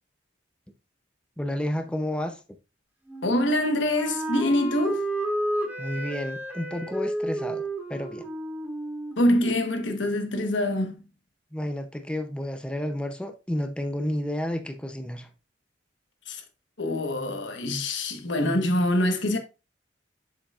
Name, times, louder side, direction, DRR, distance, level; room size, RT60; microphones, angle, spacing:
voice 1, 1.4-2.4 5.8-7.6 7.9-8.3 11.5-15.3, left 1 dB, 5° left, 0.6 m, -31 dB
Wind instrument woodwind instrument, 3.1-9.9, right 1 dB, 10° right, 1.5 m, -32 dB
voice 2, 3.2-5.0 9.2-11.0 16.3-16.4 16.8-19.4, left 1 dB, 75° left, 1.3 m, -25 dB
7.7 x 7.2 x 2.4 m
head